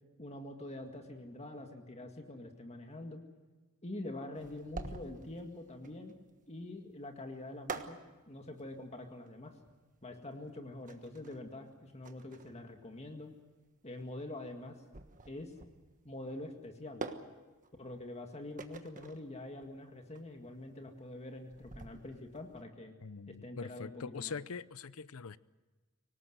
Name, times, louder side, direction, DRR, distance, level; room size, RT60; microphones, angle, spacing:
voice 1, 0.2-3.2 3.8-6.1 6.5-8.0 8.3-9.5 10.0-13.3 13.8-14.7 15.3-15.5 16.1-17.0 17.8-23.0 23.3-24.3, left 1 dB, 30° left, 1.9 m, -45 dB
sound 1, 4.3-22.6, right 3 dB, 40° right, 1.4 m, -48 dB
voice 2, 23.0-25.4, left 5 dB, 80° left, 0.7 m, -43 dB
25.0 x 18.5 x 7.9 m
head